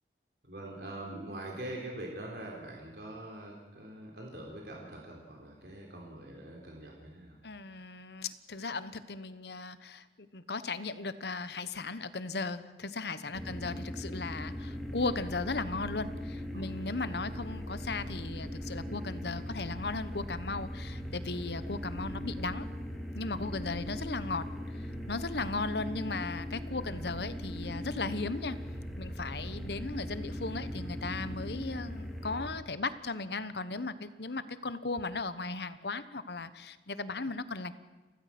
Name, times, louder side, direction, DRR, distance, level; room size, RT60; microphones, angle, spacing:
voice 1, 0.4-7.4 13.2-13.5 16.5-16.9, right 1 dB, 65° right, -1 dB, 3.9 m, -44 dB
voice 2, 7.4-22.7 23.1-24.5 24.8-28.6 29.0-37.7, left 3 dB, 70° left, 13 dB, 1.2 m, -36 dB
sound 1, 13.3-32.5, equal, ahead, 2.7 m, -39 dB
29.5 x 16.0 x 6.1 m, 1.3 s
head